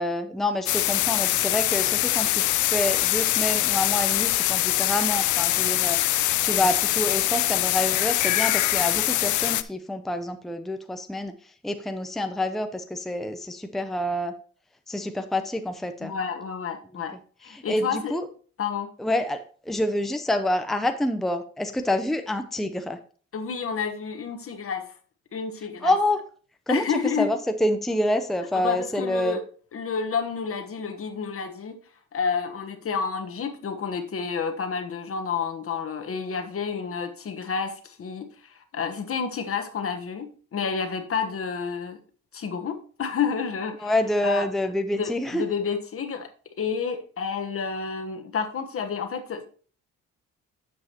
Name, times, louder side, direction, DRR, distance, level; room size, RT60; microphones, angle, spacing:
voice 1, 0.0-11.3 11.6-14.3 14.9-16.1 17.5-18.2 19.0-23.0 25.8-26.2 26.7-29.4 43.8-45.4, left 1 dB, ahead, 7 dB, 0.7 m, -27 dB
sound 1, 0.7-9.6, left 15 dB, 75° left, 0.6 m, -23 dB
voice 2, 16.0-18.2 18.6-18.9 23.3-24.9 25.3-25.9 26.7-27.3 28.5-29.4 29.7-31.8 32.1-42.0 42.3-43.9 44.2-44.5 44.9-46.3 46.6-49.5, left 6 dB, 50° left, 7 dB, 1.3 m, -30 dB
9.4 x 7.3 x 2.9 m, 0.42 s
cardioid pair, 90°, 30 cm